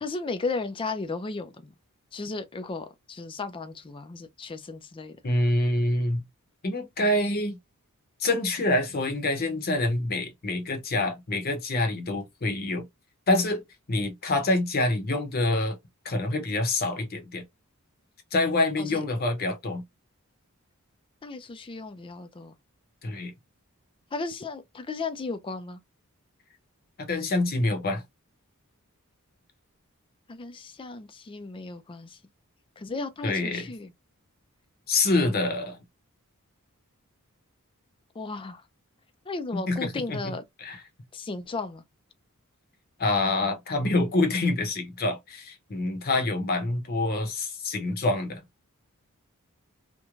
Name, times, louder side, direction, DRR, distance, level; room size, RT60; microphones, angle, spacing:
voice 1, 0.0-1.7 2.1-5.2 18.8-19.0 21.2-22.5 24.1-25.8 30.3-32.2 32.8-33.9 38.1-38.6 39.3-40.4 41.1-41.8, left 3 dB, 25° left, 0.3 m, -35 dB
voice 2, 5.2-6.2 6.6-7.6 8.2-12.9 13.3-13.6 13.9-15.8 16.0-17.4 18.3-19.8 23.0-23.3 27.0-28.0 33.2-33.7 34.9-35.8 39.5-40.3 40.6-40.8 43.0-48.4, left 2 dB, 45° left, 0.7 m, -26 dB
3.0 x 2.1 x 2.4 m
head